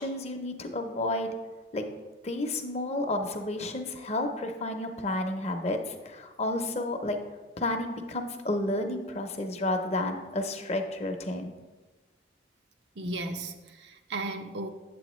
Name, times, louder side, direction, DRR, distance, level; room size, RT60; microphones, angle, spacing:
voice 1, 0.0-1.4 1.7-1.9 2.2-7.2 7.6-11.5, left 1 dB, 35° left, 5 dB, 0.6 m, -31 dB
voice 2, 13.0-14.7, right 2 dB, 75° right, 7 dB, 0.6 m, -35 dB
8.3 x 7.7 x 3.0 m, 1.2 s
head